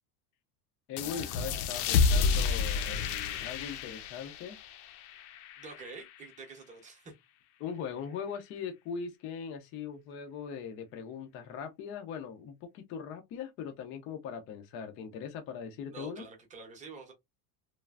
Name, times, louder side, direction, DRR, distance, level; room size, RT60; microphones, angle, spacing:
voice 1, 0.9-4.6 7.6-16.3, left 7 dB, 30° left, 0.3 m, -40 dB
sound 1, 1.0-6.2, left 5 dB, 70° left, 0.6 m, -30 dB
voice 2, 5.6-7.1 15.9-17.1, right 4 dB, 15° right, 0.7 m, -47 dB
3.2 x 2.3 x 2.3 m
cardioid pair, 170°, 47 cm